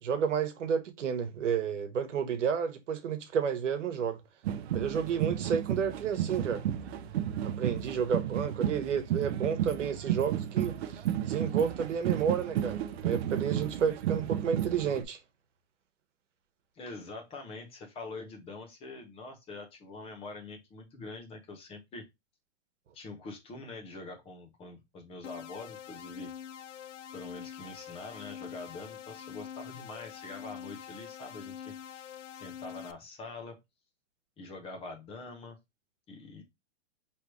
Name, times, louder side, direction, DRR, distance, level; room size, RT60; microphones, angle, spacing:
voice 1, 0.0-4.2 4.7-6.6 7.4-15.2, right 7 dB, 85° right, 1.1 m, -31 dB
sound 1, 4.4-15.0, right 10 dB, 60° right, 0.7 m, -32 dB
voice 2, 16.7-22.0 22.9-26.3 27.1-32.0 32.3-33.6 34.4-35.6 36.1-36.4, left 3 dB, 15° left, 0.7 m, -44 dB
sound 2, 25.2-32.9, left 9 dB, 80° left, 0.6 m, -45 dB
4.6 x 3.1 x 2.9 m
hypercardioid pair, 145°, 36 cm